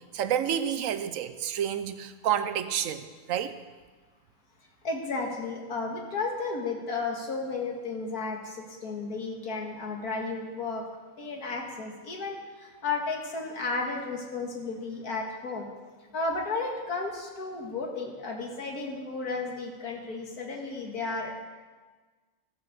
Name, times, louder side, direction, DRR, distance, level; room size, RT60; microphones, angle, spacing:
voice 1, 0.1-3.5, right 9 dB, 65° right, 11 dB, 1.1 m, -29 dB
voice 2, 4.8-10.8 11.2-15.7 16.1-21.4, left 3 dB, 90° left, 1 dB, 2.2 m, -33 dB
14.5 x 7.8 x 6.5 m, 1.4 s
omnidirectional pair, 1.5 m